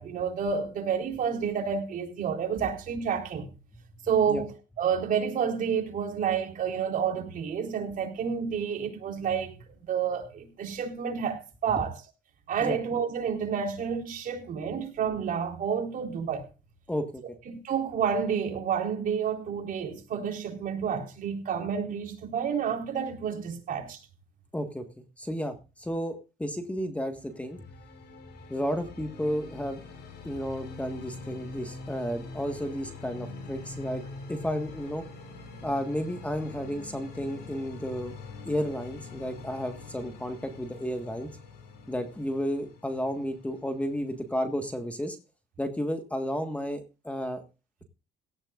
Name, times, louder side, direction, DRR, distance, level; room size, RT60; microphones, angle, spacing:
voice 1, 0.0-3.5 4.1-9.5 9.9-11.9 12.5-16.4 17.5-24.0, right 7 dB, 55° right, 4.1 m, -29 dB
voice 2, 16.9-17.2 24.5-24.8 25.2-27.6 28.5-29.8 30.2-34.0 34.3-35.1 35.6-38.1 38.4-41.4 41.9-45.2 45.6-47.4, equal, 10° left, 1.6 m, -32 dB
sound 1, 27.1-44.9, left 3 dB, 80° left, 6.1 m, -44 dB
17.5 x 13.5 x 2.5 m
cardioid pair, 110°, 17 cm